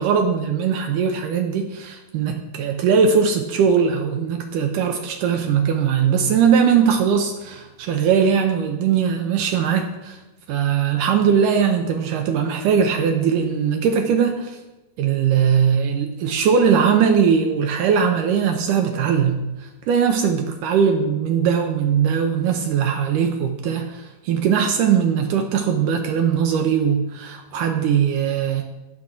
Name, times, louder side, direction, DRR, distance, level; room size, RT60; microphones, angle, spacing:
voice 1, 0.0-10.2 10.5-14.6 15.0-28.6, right 7 dB, 75° right, 4 dB, 2.0 m, -20 dB
14.5 x 5.9 x 3.8 m, 1.1 s
omnidirectional pair, 4.1 m